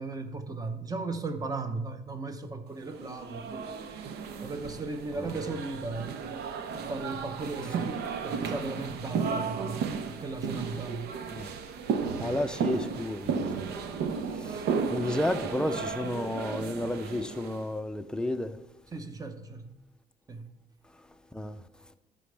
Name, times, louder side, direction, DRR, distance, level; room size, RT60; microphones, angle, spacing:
voice 1, 0.0-3.8 4.4-6.2 6.7-11.1 18.9-19.8 20.3-20.5, right 3 dB, 20° right, 0.8 m, -36 dB
sound 1, 2.9-17.6, right 5 dB, 70° right, 0.7 m, -34 dB
voice 2, 12.2-13.7 14.5-14.6 14.9-18.6 21.3-21.6, left 1 dB, 5° left, 0.5 m, -32 dB
13.0 x 5.3 x 3.4 m
cardioid pair, 110°, 17 cm